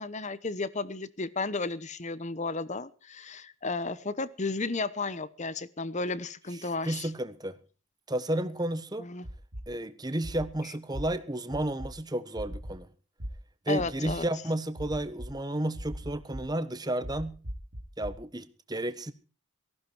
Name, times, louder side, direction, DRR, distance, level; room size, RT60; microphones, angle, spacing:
voice 1, 0.0-7.1 9.0-9.3 13.7-14.3, left 3 dB, 30° left, 17 dB, 0.9 m, -33 dB
voice 2, 6.8-7.6 8.1-9.1 9.7-12.9 13.7-17.4 18.0-19.1, right 1 dB, 20° right, 12 dB, 1.2 m, -32 dB
sound 1, 9.2-9.6 10.2-10.5 10.9-11.0 11.5-11.9 12.3-12.7 13.2-13.3 13.8-14.1 14.8-15.3 15.7-16.4 17.0-18.1, equal, 70° right, 2.9 m, -38 dB
18.5 x 15.0 x 4.5 m, 0.37 s
head